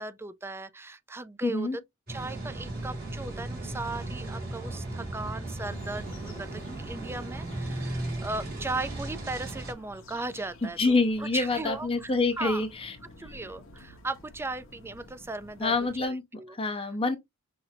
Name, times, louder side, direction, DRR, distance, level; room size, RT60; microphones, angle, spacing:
voice 1, 0.0-1.8 2.1-12.6 13.2-15.7 16.0-16.9, right 2 dB, 10° right, 0.4 m, -37 dB
voice 2, 1.4-1.8 10.6-13.0 15.6-16.2 16.5-17.2, left 3 dB, 25° left, 0.7 m, -27 dB
sound 1, 2.1-9.7, right 1 dB, 50° right, 2.6 m, -36 dB
sound 2, 5.6-16.0, left 1 dB, 65° left, 1.0 m, -50 dB
5.8 x 2.6 x 2.7 m
head